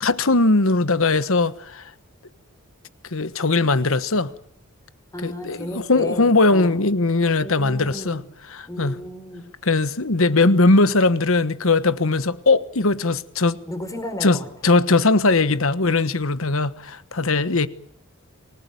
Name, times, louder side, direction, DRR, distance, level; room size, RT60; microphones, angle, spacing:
voice 1, 0.0-1.9 3.1-4.3 5.2-8.2 8.5-8.9 9.6-13.6 14.2-14.4 14.6-17.7, left 3 dB, 70° left, 1.3 m, -19 dB
voice 2, 5.1-6.8 7.4-8.3 8.7-9.4 13.7-14.5, left 1 dB, 15° left, 4.7 m, -33 dB
28.0 x 18.5 x 9.2 m
head